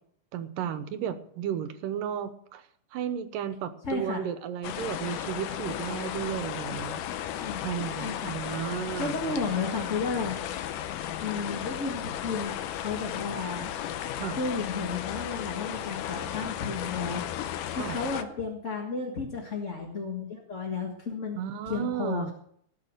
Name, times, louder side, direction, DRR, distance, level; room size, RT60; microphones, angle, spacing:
voice 1, 0.3-2.6 2.9-7.0 7.6-9.4 14.2-14.4 17.7-18.0 21.4-22.3, right 9 dB, 85° right, 10 dB, 2.7 m, -34 dB
voice 2, 3.8-4.2 7.4-7.7 8.0-8.3 9.0-10.4 11.2-13.8 14.4-21.4 21.6-22.3, left 4 dB, 35° left, 0 dB, 1.2 m, -33 dB
sound 1, 4.6-18.2, left 11 dB, 75° left, 2.3 m, -35 dB
18.5 x 7.0 x 6.6 m, 0.65 s
omnidirectional pair, 3.8 m